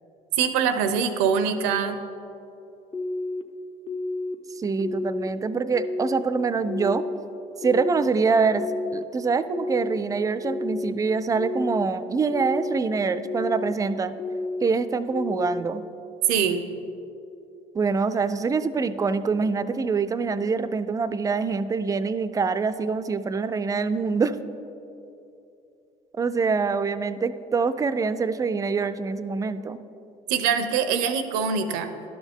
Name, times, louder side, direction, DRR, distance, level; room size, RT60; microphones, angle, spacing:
voice 1, 0.4-2.0 16.3-16.6 30.3-31.9, right 6 dB, 90° right, 9 dB, 0.6 m, -23 dB
sound 1, 2.9-3.4 3.9-4.4 4.8-5.3 5.7-6.2 6.7-7.2 7.6-8.1 8.6-9.0 9.5-10.0 10.4-10.9 11.4-11.9 12.3-12.8 13.2-13.7 14.2-14.7 15.1-15.6, left 2 dB, 35° left, 0.7 m, -30 dB
voice 2, 4.5-7.0 7.6-8.7 8.9-14.1 14.6-15.8 17.7-24.3 26.1-29.8, right 4 dB, 20° right, 13 dB, 0.4 m, -25 dB
11.5 x 6.2 x 3.6 m, 2.7 s
supercardioid pair, 80°, 16 cm